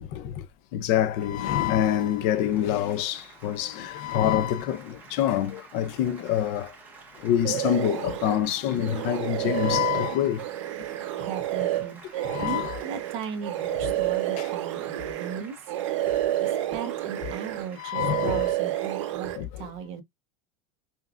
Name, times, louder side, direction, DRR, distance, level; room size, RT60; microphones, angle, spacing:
voice 1, 0.7-3.2 3.4-4.8 5.2-6.7 7.2-10.4 12.3-12.8 17.8-18.4 19.4-19.5, left 11 dB, 45° left, 0.5 m, -25 dB
Applause, 1.1-19.1, right 4 dB, 10° right, 1.0 m, -50 dB
sound 1, 7.4-8.4 8.8-15.4 15.7-17.7 17.9-19.4, right 13 dB, 90° right, 0.8 m, -29 dB
voice 2, 11.2-15.7 16.4-20.0, right 7 dB, 40° right, 0.9 m, -37 dB
5.4 x 2.3 x 2.4 m
supercardioid pair, 170°, 15 cm